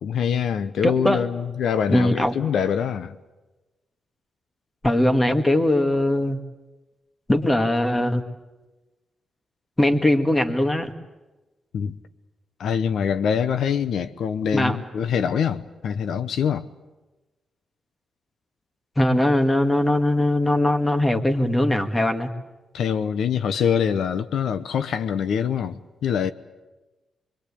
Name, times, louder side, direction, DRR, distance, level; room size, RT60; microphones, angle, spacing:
voice 1, 0.0-3.2 11.7-12.0 12.6-16.6 22.7-26.3, left 7 dB, 85° left, 0.9 m, -24 dB
voice 2, 0.8-1.2 1.9-2.3 4.8-6.4 7.3-8.2 9.8-10.9 14.5-14.8 19.0-22.3, left 1 dB, 15° left, 2.0 m, -20 dB
25.0 x 24.0 x 8.5 m
cardioid pair, 115°, 0 cm